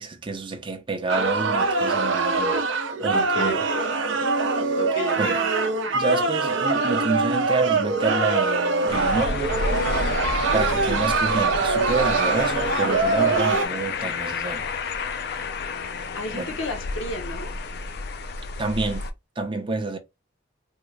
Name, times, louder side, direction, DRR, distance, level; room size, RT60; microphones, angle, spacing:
voice 1, 0.0-2.6 3.0-3.6 5.2-5.4 5.9-9.6 10.5-14.6 16.3-16.6 18.6-19.1 19.4-20.0, right 3 dB, 25° right, 0.6 m, -28 dB
sound 1, 1.1-13.7, right 3 dB, 65° right, 0.6 m, -23 dB
voice 2, 3.1-3.9 4.8-5.4 16.1-17.5, left 1 dB, 70° left, 0.9 m, -32 dB
sound 2, 8.9-19.1, left 4 dB, 50° left, 0.4 m, -30 dB
3.6 x 2.1 x 3.2 m
head